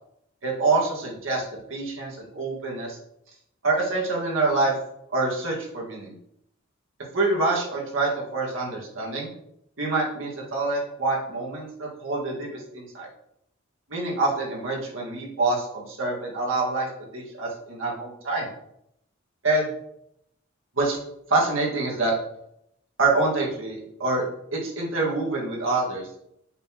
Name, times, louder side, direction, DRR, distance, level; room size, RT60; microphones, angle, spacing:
voice 1, 0.4-3.0 3.6-4.7 5.1-6.1 7.1-9.3 9.8-13.1 13.9-16.9 17.1-18.5 19.4-19.7 20.8-21.0 21.3-22.1 23.0-24.3 24.5-26.1, right 3 dB, 70° right, -2 dB, 1.9 m, -26 dB
7.8 x 4.2 x 3.0 m, 0.75 s
head